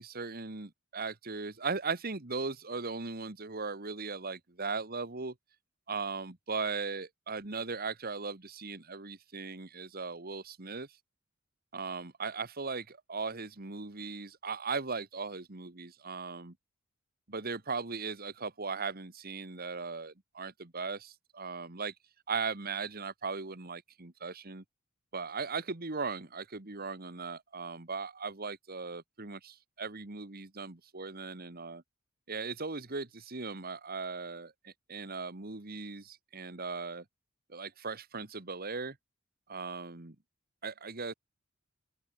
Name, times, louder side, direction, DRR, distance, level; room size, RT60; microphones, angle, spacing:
voice 1, 0.0-5.4 5.9-11.0 11.7-16.6 17.3-21.9 22.3-24.6 25.1-31.8 32.3-37.1 37.5-39.0 39.5-40.2 40.6-41.1, right 4 dB, 45° right, 1.7 m, -38 dB
open air
head